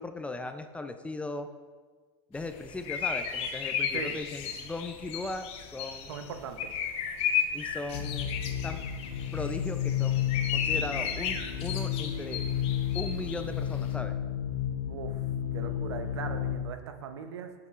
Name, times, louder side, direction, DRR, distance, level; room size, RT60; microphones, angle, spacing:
voice 1, 0.0-1.5 2.3-6.1 7.5-8.3 8.6-8.8 9.3-10.2 10.5-14.2, left 2 dB, 10° left, 8 dB, 0.4 m, -38 dB
sound 1, 2.3-13.9, left 7 dB, 50° left, 0.8 m, -34 dB
voice 2, 6.1-6.7 14.9-15.2 15.5-17.7, right 6 dB, 90° right, 7 dB, 0.7 m, -40 dB
sound 2, 7.9-16.6, left 9 dB, 80° left, 0.6 m, -32 dB
8.0 x 6.8 x 2.4 m, 1.4 s
supercardioid pair, 115°, 14 cm